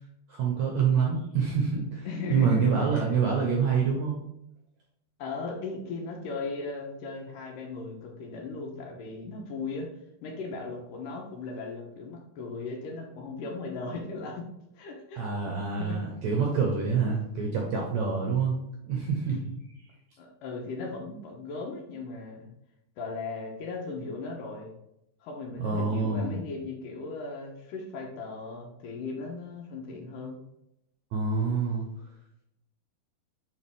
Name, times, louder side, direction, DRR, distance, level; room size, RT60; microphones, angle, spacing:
voice 1, 0.3-4.2 15.2-18.6 18.8-19.5 25.6-26.3 31.1-31.9, right 5 dB, 70° right, -1 dB, 1.8 m, -26 dB
voice 2, 2.1-3.2 5.2-9.9 10.2-14.5 14.8-15.2 15.8-16.0 20.2-22.5 23.0-24.7 25.2-30.4, left 3 dB, 70° left, 1 dB, 2.4 m, -37 dB
7.0 x 5.2 x 3.5 m, 0.83 s
omnidirectional pair, 4.3 m